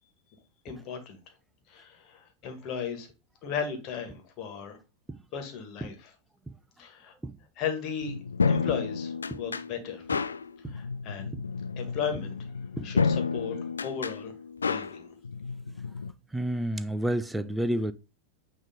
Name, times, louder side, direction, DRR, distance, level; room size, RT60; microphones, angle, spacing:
voice 1, 0.6-1.2 1.7-3.1 3.4-4.8 5.3-6.1 6.8-7.1 7.6-8.2 8.5-10.1 10.6-11.3 11.8-12.5 12.8-14.3 14.7-15.1, left 7 dB, 40° left, 1.8 m, -36 dB
sound 1, 8.0-16.1, left 5 dB, 75° left, 0.3 m, -31 dB
voice 2, 16.3-17.9, right 1 dB, 5° right, 0.5 m, -29 dB
8.9 x 3.1 x 3.6 m
figure-of-eight pair, 90°, 0 cm